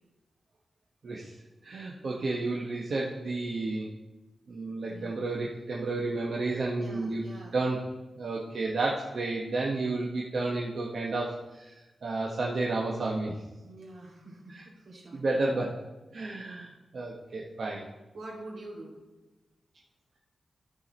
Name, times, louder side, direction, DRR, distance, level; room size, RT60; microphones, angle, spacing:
voice 1, 1.6-3.9 4.5-7.2 7.5-7.8 8.2-11.7 12.0-13.4 14.5-14.6 15.1-15.7 16.1-17.9, right 2 dB, 60° right, -3 dB, 1.0 m, -31 dB
voice 2, 4.9-5.2 6.8-7.6 13.6-15.5 18.1-19.0, right 2 dB, 80° right, -3 dB, 2.6 m, -46 dB
13.5 x 4.7 x 4.3 m, 1.1 s
wide cardioid pair, 145°, 0 cm